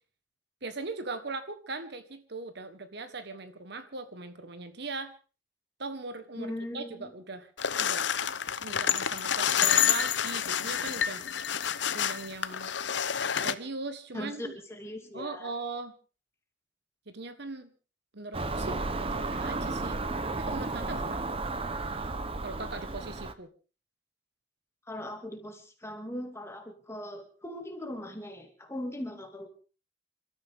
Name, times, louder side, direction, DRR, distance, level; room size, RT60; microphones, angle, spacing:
voice 1, 0.6-5.1 5.8-7.5 7.8-8.1 8.6-11.5 11.9-12.7 13.4-14.5 15.1-15.9 17.1-17.7 18.1-20.0 20.4-21.3 22.4-23.5, right 3 dB, 60° right, 10 dB, 1.5 m, -39 dB
voice 2, 6.4-7.1 14.1-15.5 24.9-29.5, left 1 dB, 15° left, 4 dB, 2.6 m, -39 dB
sound 1, 7.6-13.6, left 9 dB, 65° left, 0.8 m, -28 dB
Car passing by / Engine, 18.3-23.3, right 3 dB, 30° right, 1.0 m, -33 dB
28.0 x 13.5 x 3.7 m, 0.36 s
head